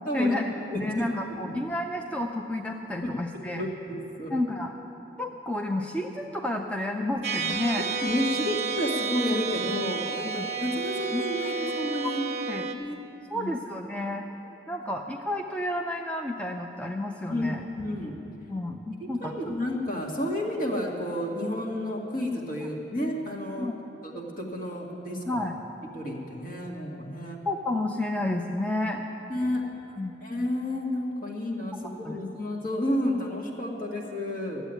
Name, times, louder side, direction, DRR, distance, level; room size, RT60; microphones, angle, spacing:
voice 1, 0.1-3.6 4.3-4.7 5.2-7.9 10.2-10.5 11.1-11.2 12.5-12.7 13.3-14.3 14.7-17.6 18.5-19.5 23.6-23.7 25.3-25.6 27.5-29.0 30.0-30.2 32.0-32.2, left 1 dB, 5° left, 2 dB, 0.5 m, -30 dB
voice 2, 0.7-1.1 1.5-1.6 3.0-4.3 7.5-7.6 8.0-12.2 12.8-13.0 13.3-13.5 17.3-18.1 19.2-23.7 24.1-25.2 25.9-27.4 29.3-29.6 30.2-34.6, left 1 dB, 55° left, -2 dB, 2.0 m, -31 dB
sound 1, 7.2-12.7, right 4 dB, 40° right, 0.7 m, -31 dB
13.0 x 8.1 x 9.0 m, 3.0 s
head